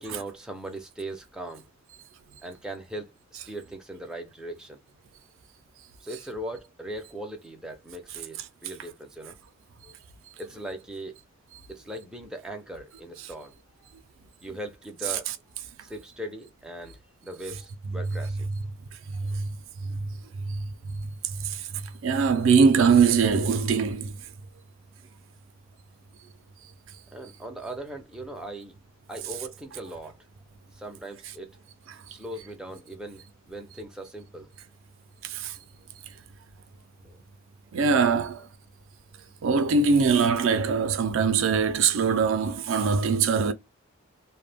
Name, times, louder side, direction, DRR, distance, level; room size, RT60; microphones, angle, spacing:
voice 1, 0.0-1.7 2.4-4.8 6.0-9.4 9.8-9.9 10.4-11.1 11.7-13.9 14.4-15.3 15.8-18.5 19.2-19.3 22.4-22.6 27.1-28.8 29.1-30.3 30.7-31.6 32.1-34.5 37.0-37.2, right 1 dB, 5° right, 0.5 m, -39 dB
voice 2, 19.1-19.5 19.8-20.1 20.5-20.6 20.9-21.0 21.4-21.7 22.0-24.2 35.2-35.6 37.7-38.5 39.4-43.5, right 5 dB, 70° right, 0.4 m, -22 dB
2.1 x 2.1 x 3.2 m
head